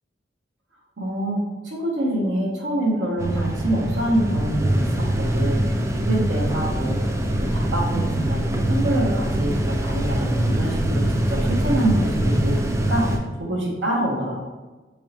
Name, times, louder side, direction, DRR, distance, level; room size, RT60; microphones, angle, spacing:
voice 1, 1.0-14.4, right 1 dB, 85° right, -2 dB, 0.7 m, -26 dB
sound 1, 3.2-13.2, right 1 dB, 15° right, 0.3 m, -23 dB
3.6 x 3.3 x 2.9 m, 1.2 s
head